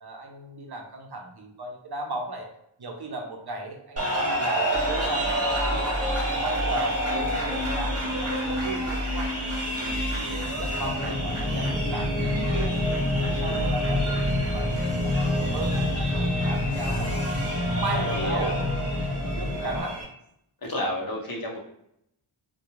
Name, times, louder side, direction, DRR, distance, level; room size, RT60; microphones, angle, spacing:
voice 1, 0.0-2.5 2.8-9.3 9.8-12.7 13.1-15.8 16.1-18.9 19.2-20.0, right 2 dB, 55° right, 2 dB, 0.6 m, -36 dB
sound 1, 4.0-20.0, right 1 dB, 30° right, 1.1 m, -31 dB
sound 2, 4.7-19.8, left 1 dB, ahead, 0.6 m, -28 dB
sound 3, 12.7-18.1, left 1 dB, 80° left, 0.8 m, -43 dB
voice 2, 13.4-13.8 16.9-17.1 17.9-18.5 19.6-19.9 20.6-21.6, left 1 dB, 45° left, -2 dB, 0.7 m, -32 dB
2.2 x 2.2 x 3.0 m, 0.75 s
wide cardioid pair, 75°, 49 cm